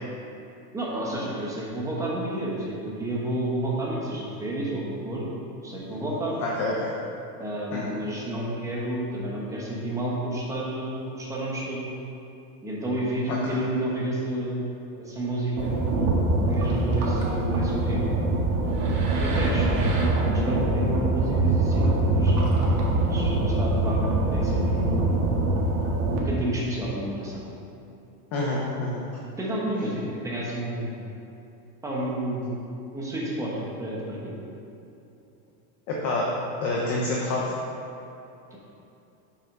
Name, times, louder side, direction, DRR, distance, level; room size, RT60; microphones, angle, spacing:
voice 1, 0.7-5.3 5.6-6.4 7.4-11.8 12.6-14.6 15.0-15.8 16.4-18.0 19.1-22.5 23.0-25.1 26.1-27.4 29.4-30.9 31.8-32.5 32.9-34.3 38.5-38.6, right 1 dB, 5° right, -5 dB, 0.9 m, -30 dB
voice 2, 6.4-6.9 7.7-7.9 13.3-13.4 28.3-29.0 35.9-36.3 36.6-37.5, left 2 dB, 25° left, -4 dB, 0.3 m, -27 dB
sound 1, 15.6-26.2, right 2 dB, 70° right, 1.7 m, -23 dB
7.1 x 5.6 x 5.3 m, 2.8 s
supercardioid pair, 175°, 46 cm